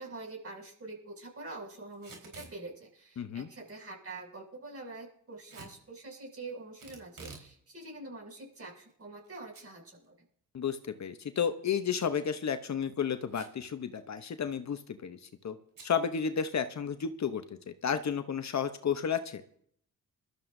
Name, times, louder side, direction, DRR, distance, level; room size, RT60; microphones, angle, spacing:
voice 1, 0.0-10.2, right 2 dB, 45° right, 0 dB, 6.8 m, -45 dB
Packing tape duct tape / Tearing, 1.9-2.6 5.5-5.8 6.8-7.5 7.9-8.0 8.7-9.3 9.5-9.6 10.0-10.1 12.1-12.4 13.3-13.7 14.0-14.1 14.3-14.6 15.7-15.9, right 3 dB, 70° right, 4.4 m, -49 dB
voice 2, 3.2-3.5 10.5-15.2 15.4-15.6 15.8-19.4, left 7 dB, 55° left, 9 dB, 0.9 m, -32 dB
23.0 x 13.0 x 2.7 m, 0.65 s
cardioid pair, 75°, 34 cm